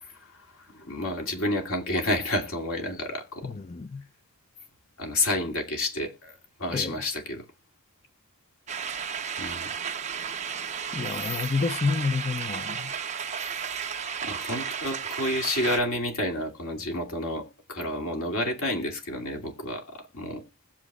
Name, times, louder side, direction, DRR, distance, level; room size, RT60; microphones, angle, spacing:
voice 1, 0.0-3.5 5.0-7.4 9.4-9.7 14.2-20.4, left 1 dB, 85° left, 2.7 m, -30 dB
voice 2, 3.4-4.0 6.7-6.9 10.9-12.9, left 4 dB, 30° left, 0.4 m, -29 dB
sound 1, 8.7-15.8, right 7 dB, 35° right, 0.8 m, -33 dB
20.5 x 7.3 x 2.4 m
head